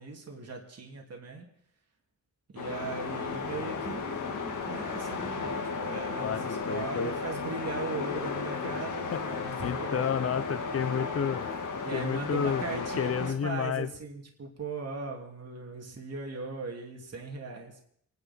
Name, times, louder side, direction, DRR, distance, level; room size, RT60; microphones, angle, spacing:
voice 1, 0.0-1.4 2.5-10.1 11.8-17.8, right 4 dB, 50° right, 1 dB, 2.9 m, -39 dB
sound 1, 2.6-13.3, left 4 dB, 75° left, 1.9 m, -34 dB
voice 2, 6.2-7.1 9.1-9.2 9.6-11.5 11.9-13.9, left 7 dB, 50° left, 14 dB, 0.8 m, -31 dB
27.0 x 10.0 x 4.4 m, 0.66 s
wide cardioid pair, 110°, 31 cm